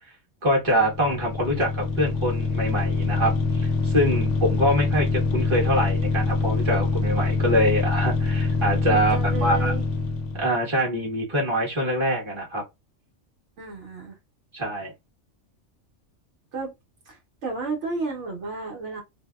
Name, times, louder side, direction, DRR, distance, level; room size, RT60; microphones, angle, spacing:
voice 1, 0.4-9.7 10.3-12.6 14.5-14.9, equal, 25° right, 1.1 m, -24 dB
sound 1, 0.6-10.5, left 3 dB, 85° left, 0.9 m, -25 dB
voice 2, 8.9-9.9 13.6-14.2 16.5-16.7 17.1-19.0, right 4 dB, 75° right, 1.1 m, -32 dB
2.7 x 2.1 x 2.2 m
omnidirectional pair, 1.2 m